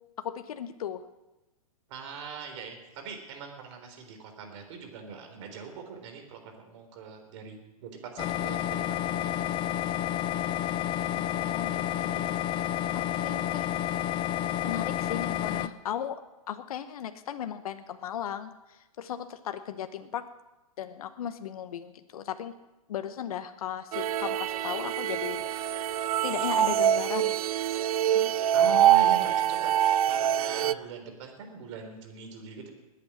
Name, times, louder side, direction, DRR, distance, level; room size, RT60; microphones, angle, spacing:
voice 1, 0.2-1.0 11.2-11.8 12.1-12.7 12.9-13.7 14.6-16.2 16.5-20.2 20.8-22.5 22.9-25.8 26.2-27.4 28.1-28.3, left 9 dB, 75° left, 9 dB, 1.0 m, -36 dB
voice 2, 1.9-9.3 11.9-12.2 28.5-32.7, right 5 dB, 55° right, 5 dB, 3.8 m, -41 dB
sound 1, 8.2-15.7, left 11 dB, 25° left, 0.6 m, -30 dB
sound 2, 23.9-30.7, right 11 dB, 75° right, 0.5 m, -25 dB
21.0 x 8.5 x 6.1 m, 1.0 s
hypercardioid pair, 130°, 19 cm